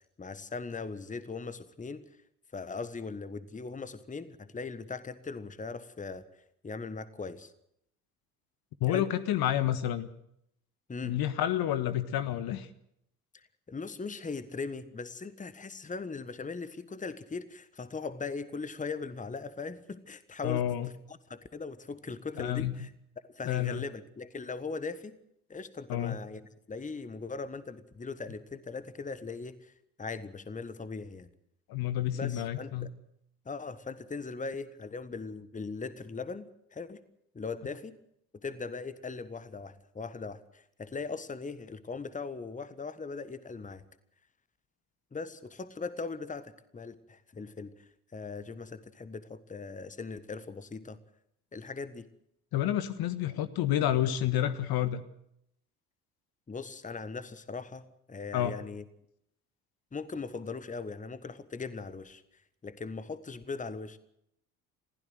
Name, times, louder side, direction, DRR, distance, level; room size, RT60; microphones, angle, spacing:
voice 1, 0.2-2.0 2.5-6.2 6.6-7.5 8.9-9.1 10.9-11.2 13.3-20.6 21.1-22.9 23.2-25.1 25.5-29.7 30.0-31.3 32.1-32.9 33.4-37.0 37.3-37.9 38.4-43.8 45.1-51.0 51.5-52.1 56.5-58.8 59.9-62.2 62.6-64.0, left 4 dB, 15° left, 14 dB, 1.4 m, -39 dB
voice 2, 8.8-10.1 11.0-12.7 20.4-20.9 22.4-22.7 23.4-23.8 25.9-26.2 31.7-32.9 52.5-55.0 58.3-58.5, left 12 dB, 50° left, 12 dB, 1.4 m, -29 dB
21.5 x 15.5 x 7.9 m, 0.73 s
figure-of-eight pair, 55°, 45 cm